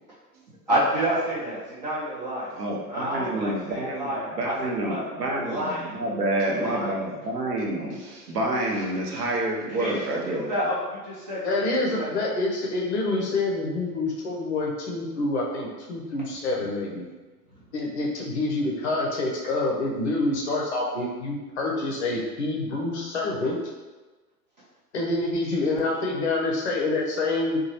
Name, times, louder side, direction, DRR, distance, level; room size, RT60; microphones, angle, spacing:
voice 1, 0.7-2.6 2.9-4.5 4.8-6.0 6.5-7.0 9.7-12.1, right 1 dB, 30° right, -8 dB, 0.4 m, -29 dB
voice 2, 2.6-10.5, right 1 dB, 70° right, -2 dB, 0.8 m, -28 dB
voice 3, 11.4-17.0 17.7-23.6 24.9-27.6, left 2 dB, 45° left, -2 dB, 0.6 m, -27 dB
2.8 x 2.3 x 2.8 m, 1.3 s
figure-of-eight pair, 105°, 50 cm